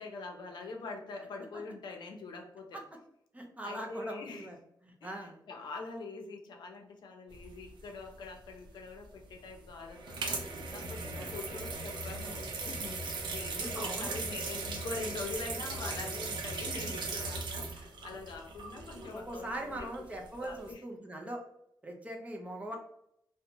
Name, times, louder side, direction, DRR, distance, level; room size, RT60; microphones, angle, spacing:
voice 1, 0.0-2.8 3.6-4.5 5.0-19.9 20.4-20.8, left 3 dB, 80° left, 3 dB, 0.6 m, -44 dB
voice 2, 3.3-4.6 4.8-5.4 11.1-11.3 13.6-14.2 19.1-21.4 21.8-22.8, right 1 dB, 20° right, 1 dB, 0.5 m, -41 dB
sound 1, 7.3-8.3 9.3-19.4 19.8-20.1 20.4-20.6, right 3 dB, 80° right, 0.5 m, -38 dB
2.6 x 2.1 x 2.8 m, 0.72 s
wide cardioid pair, 115°, 8 cm